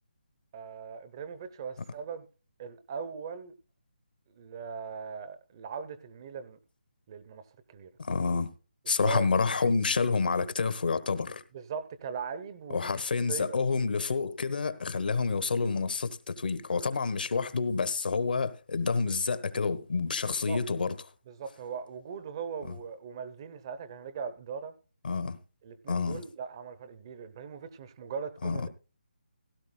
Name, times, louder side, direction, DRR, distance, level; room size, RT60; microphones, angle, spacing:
voice 1, 0.5-2.3 2.6-3.5 4.3-6.6 7.1-7.9 9.0-9.3 11.5-12.8 13.3-13.6 20.5-20.6 21.3-24.7 25.6-28.7, right 6 dB, 25° right, 0.8 m, -39 dB
voice 2, 8.0-8.5 8.9-11.4 12.7-21.0 25.0-25.4 25.9-26.2 28.4-28.7, left 4 dB, 60° left, 1.2 m, -28 dB
16.5 x 12.5 x 2.2 m
hypercardioid pair, 170°, 6 cm